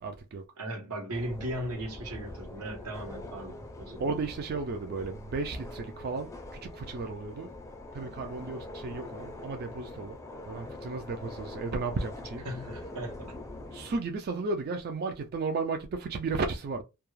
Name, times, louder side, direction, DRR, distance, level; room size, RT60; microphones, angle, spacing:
voice 1, 0.0-0.4 4.0-7.5 7.9-10.2 10.5-12.4 13.7-16.8, right 3 dB, 45° right, 0.3 m, -34 dB
voice 2, 0.6-4.2 12.4-13.4, right 1 dB, 85° right, 0.9 m, -37 dB
sound 1, 1.1-14.0, left 2 dB, 15° left, 0.5 m, -44 dB
2.3 x 2.3 x 3.0 m
head